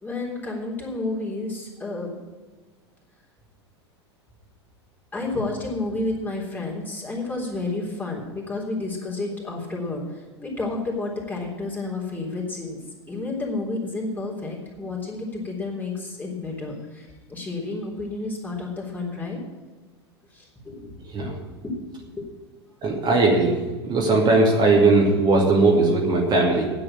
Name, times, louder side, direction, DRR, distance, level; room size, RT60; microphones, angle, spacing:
voice 1, 0.0-2.1 5.1-12.8 13.1-19.4 20.3-20.9 21.2-21.3 21.6-21.7 22.2-22.3, left 2 dB, 10° left, -3 dB, 3.5 m, -31 dB
voice 2, 22.8-23.6 23.8-26.7, right 3 dB, 30° right, -1 dB, 2.4 m, -18 dB
9.8 x 7.8 x 8.7 m, 1.3 s
figure-of-eight pair, 90°, 14 cm